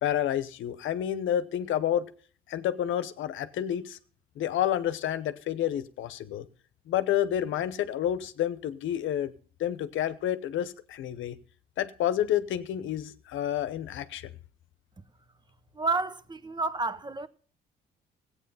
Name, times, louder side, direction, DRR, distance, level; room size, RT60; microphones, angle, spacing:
voice 1, 0.0-2.1 2.5-4.0 4.4-6.4 6.9-9.3 9.6-11.4 11.8-14.3, left 11 dB, 80° left, 0.9 m, -29 dB
voice 2, 15.7-17.3, right 3 dB, 20° right, 0.8 m, -30 dB
15.0 x 8.4 x 5.5 m
cardioid pair, 90°, 20 cm